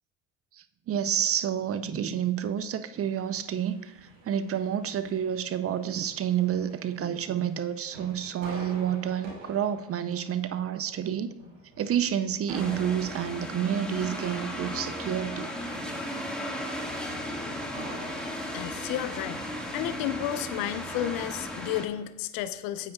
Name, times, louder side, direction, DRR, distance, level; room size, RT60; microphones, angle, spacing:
voice 1, 0.5-11.3 11.8-15.5, right 9 dB, 40° right, 12 dB, 0.6 m, -29 dB
sound 1, 2.9-20.5, right 2 dB, 85° right, 2.5 m, -49 dB
sound 2, 12.5-21.9, equal, ahead, 1.7 m, -35 dB
voice 2, 18.2-19.4 19.7-22.9, left 12 dB, 65° left, 12 dB, 0.6 m, -32 dB
9.3 x 8.1 x 2.3 m, 0.90 s
hypercardioid pair, 65°, 38 cm